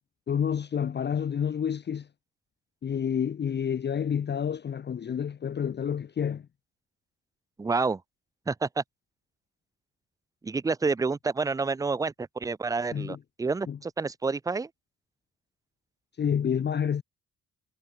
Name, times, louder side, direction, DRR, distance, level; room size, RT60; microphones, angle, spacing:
voice 1, 0.3-2.1 2.8-6.5 12.9-13.2 13.7-13.8 16.2-17.0, left 8 dB, 35° left, 0.7 m, -29 dB
voice 2, 7.6-8.0 8.5-8.8 10.4-14.7, right 4 dB, 10° right, 0.4 m, -29 dB
cardioid pair, 90°, 30 cm